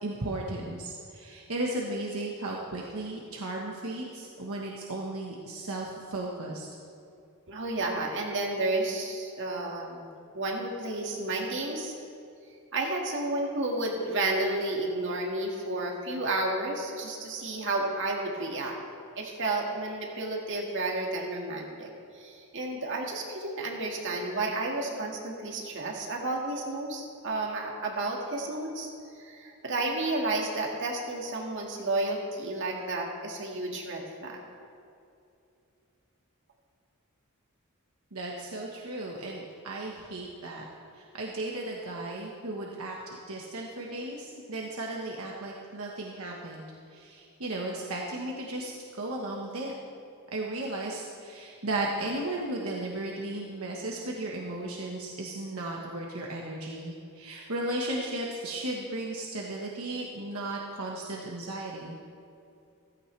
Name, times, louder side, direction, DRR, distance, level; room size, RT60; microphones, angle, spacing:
voice 1, 0.0-6.7 38.1-40.7 40.9-49.7 50.3-61.9, right 2 dB, 75° right, -2 dB, 1.3 m, -35 dB
voice 2, 7.5-10.1 10.3-11.9 12.7-18.8 19.2-21.9 22.1-28.9 29.2-34.4, right 2 dB, 60° right, 0 dB, 2.0 m, -31 dB
15.5 x 15.0 x 3.3 m, 2.6 s
head